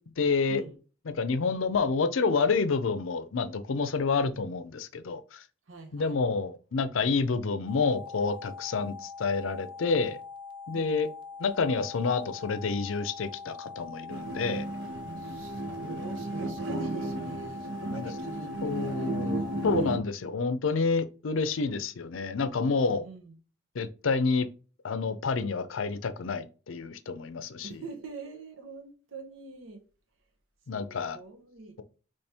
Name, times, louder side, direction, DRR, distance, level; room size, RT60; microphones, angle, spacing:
voice 1, 0.2-0.6 1.2-5.4 5.9-10.2 10.7-11.1 11.4-14.7 17.9-18.1 18.6-19.4 19.6-23.0 23.7-24.5 24.8-27.8 30.7-31.2, left 4 dB, 85° left, 0.5 m, -28 dB
voice 2, 5.7-6.2 10.7-11.0 15.0-19.5 22.9-23.4 27.6-29.8 30.7-31.7, right 3 dB, 90° right, 1.0 m, -44 dB
sound 1, 7.7-19.7, left 4 dB, 25° right, 0.5 m, -43 dB
sound 2, 14.1-20.0, right 2 dB, 65° right, 0.7 m, -34 dB
4.3 x 3.1 x 3.4 m
head